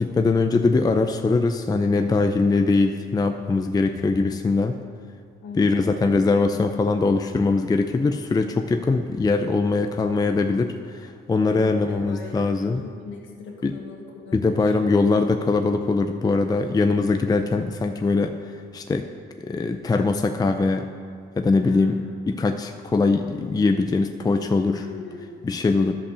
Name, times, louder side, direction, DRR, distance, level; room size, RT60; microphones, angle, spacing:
voice 1, 0.0-4.8 5.5-12.8 13.6-13.7 14.3-19.1 19.4-20.9 21.4-24.9 25.4-25.9, left 3 dB, 20° left, 6 dB, 0.5 m, -22 dB
voice 2, 5.4-5.9 11.4-14.6 21.6-21.9 24.7-25.3, left 5 dB, 75° left, 0 dB, 1.5 m, -39 dB
11.0 x 5.4 x 6.8 m, 2.2 s
cardioid pair, 90°, 20 cm